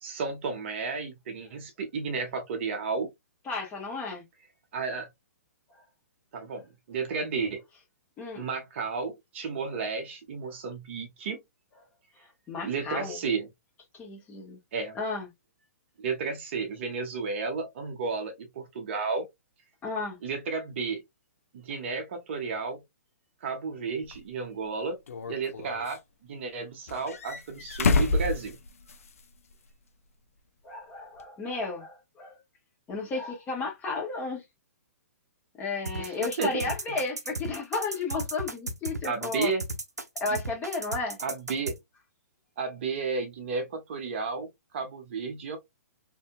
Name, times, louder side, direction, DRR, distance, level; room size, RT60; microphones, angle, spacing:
voice 1, 0.0-3.1 4.7-5.1 6.3-7.6 8.3-11.4 12.6-13.5 14.7-15.0 16.0-19.3 20.2-21.0 21.5-22.8 23.4-25.0 25.3-26.0 26.3-28.6 36.0-36.5 36.9-37.0 39.0-39.6 40.3-40.4 41.2-41.8 42.6-44.5 44.7-45.6, right 4 dB, 45° right, 0.8 m, -32 dB
voice 2, 3.4-4.2 8.2-8.4 12.5-13.2 14.0-14.6 14.9-15.3 19.8-20.2 30.6-32.4 32.9-34.4 35.6-39.5 40.1-41.2, left 3 dB, 20° left, 1.2 m, -33 dB
sound 1, 24.1-24.2 25.1-26.0 26.9-29.2 29.5-29.6 31.2-31.3, left 3 dB, 60° left, 0.5 m, -28 dB
sound 2, 35.9-41.8, right 2 dB, 85° right, 0.6 m, -35 dB
2.6 x 2.6 x 2.2 m
figure-of-eight pair, 120°, 9 cm